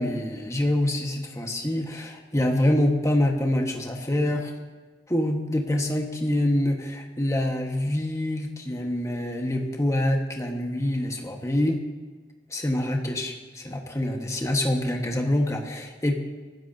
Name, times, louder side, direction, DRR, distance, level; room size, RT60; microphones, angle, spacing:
voice 1, 0.0-4.5 5.1-11.8 12.5-16.1, left 1 dB, 20° left, 2 dB, 1.3 m, -25 dB
25.0 x 13.0 x 2.7 m, 1.4 s
head